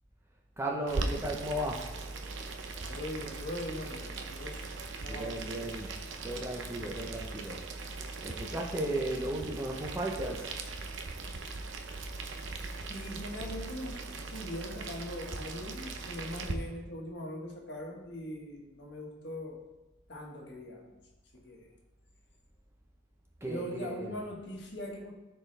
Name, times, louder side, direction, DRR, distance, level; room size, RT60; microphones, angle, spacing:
voice 1, 0.6-2.0 2.8-2.9 5.1-5.9 6.2-7.6 8.2-10.6 23.4-24.2, right 1 dB, 15° right, 0 dB, 0.7 m, -35 dB
Boiling, 0.9-16.5, right 3 dB, 75° right, 0.8 m, -39 dB
voice 2, 2.9-4.7 5.0-5.5 12.9-19.7 20.1-21.0 21.3-21.7 23.4-25.1, left 1 dB, 60° left, 0 dB, 1.6 m, -41 dB
14.0 x 4.7 x 3.3 m, 1.1 s
head